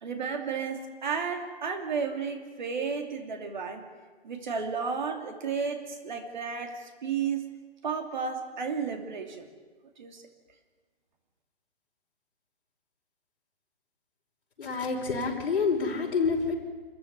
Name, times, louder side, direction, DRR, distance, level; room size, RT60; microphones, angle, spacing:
voice 1, 0.0-3.8 4.2-7.5 7.8-9.5 10.0-10.2, right 5 dB, 45° right, 5 dB, 2.8 m, -33 dB
voice 2, 14.6-16.5, left 5 dB, 60° left, -1 dB, 5.4 m, -27 dB
27.0 x 14.5 x 9.5 m, 1.4 s
hypercardioid pair, 175°, 31 cm